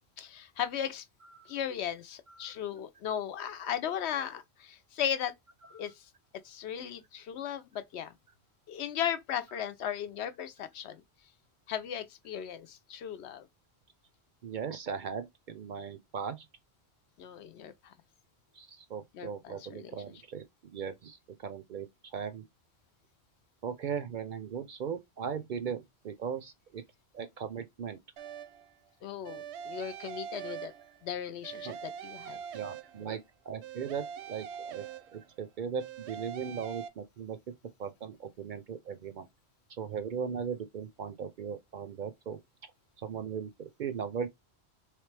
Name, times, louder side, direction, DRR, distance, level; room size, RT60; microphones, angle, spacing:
voice 1, 0.2-1.0 1.5-5.3 5.7-6.1 6.4-8.1 8.7-11.0 11.7-13.5 17.2-17.9 19.1-20.0 29.0-30.7 31.0-32.4, left 9 dB, 80° left, 0.9 m, -36 dB
voice 2, 14.4-16.5 18.5-20.4 20.7-21.9 22.1-22.4 23.6-26.8 27.1-28.0 31.6-31.8 32.5-33.2 33.5-34.8 35.1-37.4 37.8-39.3 39.8-42.4 43.0-43.5 43.8-44.3, right 7 dB, 60° right, 0.6 m, -38 dB
sound 1, 28.2-28.7 29.2-31.1 31.4-33.2 33.6-35.4 35.8-36.9, right 8 dB, 80° right, 0.9 m, -43 dB
3.3 x 3.2 x 3.2 m
omnidirectional pair, 1.1 m